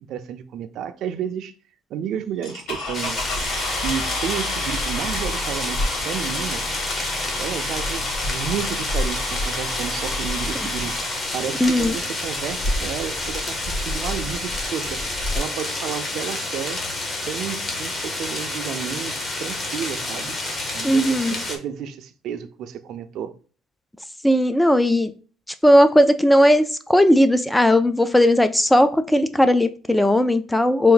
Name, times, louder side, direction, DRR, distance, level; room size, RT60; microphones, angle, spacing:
voice 1, 0.0-1.5 1.9-3.2 3.8-6.6 7.4-10.9 11.3-15.0 15.3-16.8 17.3-20.4 20.7-23.3, right 9 dB, 60° right, 0.5 m, -31 dB
sound 1, 2.1-15.4, left 1 dB, 55° left, 2.3 m, -33 dB
sound 2, 2.4-12.4 13.1-13.2 13.7-13.8 14.0-14.4, left 2 dB, 90° left, 2.1 m, -31 dB
sound 3, 2.9-21.6, left 2 dB, 25° left, 1.0 m, -29 dB
voice 2, 11.6-11.9 20.8-21.4 24.2-25.1 25.6-30.9, left 1 dB, 5° left, 0.4 m, -17 dB
4.3 x 2.6 x 3.8 m
cardioid pair, 145°, 0 cm